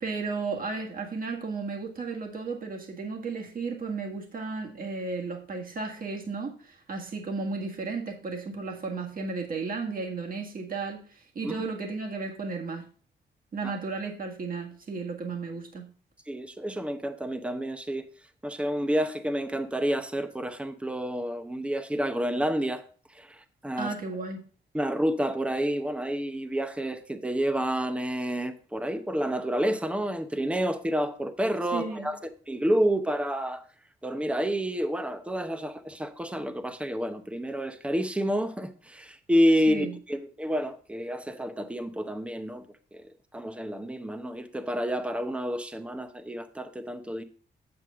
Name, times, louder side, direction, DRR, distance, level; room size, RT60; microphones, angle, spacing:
voice 1, 0.0-12.9 13.5-15.9 23.8-24.4 31.7-32.1 39.7-39.9, right 4 dB, 50° right, 1.8 m, -34 dB
voice 2, 16.3-18.1 18.4-22.8 23.1-23.9 24.7-32.2 32.5-33.6 34.0-42.6 42.9-43.1 43.3-47.2, equal, 5° right, 0.8 m, -29 dB
8.1 x 7.7 x 3.7 m
cardioid pair, 95°, 18 cm